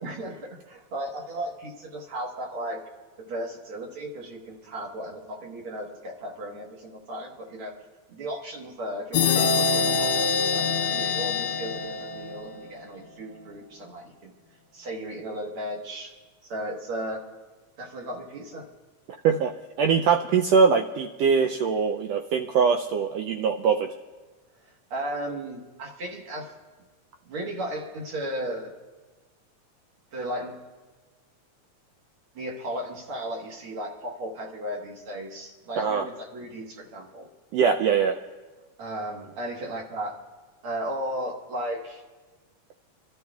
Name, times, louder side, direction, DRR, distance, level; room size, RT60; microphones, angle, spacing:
voice 1, 0.0-2.8 3.3-7.7 8.1-14.3 14.7-16.1 16.4-17.2 17.8-18.7 24.6-26.5 27.3-28.7 30.1-30.6 32.4-37.3 38.8-40.1 40.6-42.0, right 1 dB, 55° right, 0 dB, 2.1 m, -35 dB
sound 1, 9.1-12.7, left 5 dB, 90° left, 1.1 m, -25 dB
voice 2, 19.2-23.9 35.8-36.1 37.5-38.2, right 6 dB, 85° right, 4 dB, 1.4 m, -22 dB
27.0 x 12.0 x 2.4 m, 1.3 s
omnidirectional pair, 3.4 m